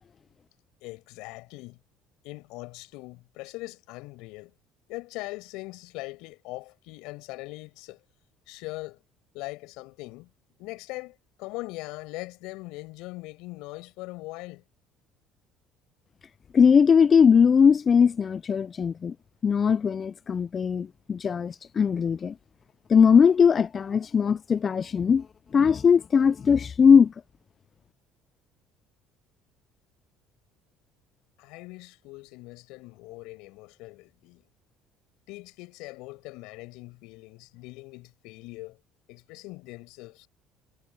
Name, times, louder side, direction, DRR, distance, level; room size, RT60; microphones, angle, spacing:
voice 1, 0.8-1.8 2.2-4.5 4.9-8.0 8.5-9.0 9.3-10.3 10.6-14.6 31.4-34.5 35.3-38.8 39.1-40.3, left 22 dB, 80° left, 6.9 m, -41 dB
voice 2, 16.5-19.1 19.4-22.3 22.9-25.3 25.5-27.1, left 6 dB, 40° left, 0.3 m, -20 dB
supercardioid pair, 80°, 0 cm